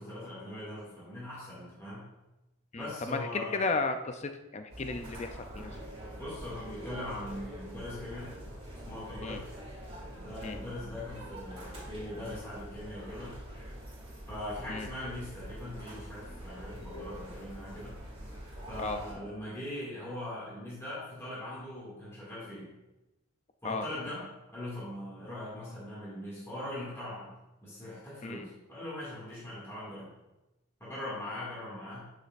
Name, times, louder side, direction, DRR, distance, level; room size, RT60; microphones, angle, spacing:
voice 1, 0.0-2.1 2.7-3.6 6.2-8.4 8.9-9.5 10.1-13.4 14.3-18.0 18.7-22.7 23.6-24.2 24.5-27.3 27.6-30.1 30.8-32.1, left 1 dB, 15° left, -9 dB, 2.2 m, -41 dB
voice 2, 2.7-5.7 9.2-9.4 10.4-10.6 14.7-14.9 18.8-19.0 23.6-23.8 28.2-28.4, left 3 dB, 30° left, 7 dB, 0.4 m, -34 dB
sound 1, 4.7-19.1, equal, 25° right, 2.7 m, -44 dB
9.7 x 6.6 x 2.5 m, 1.0 s
head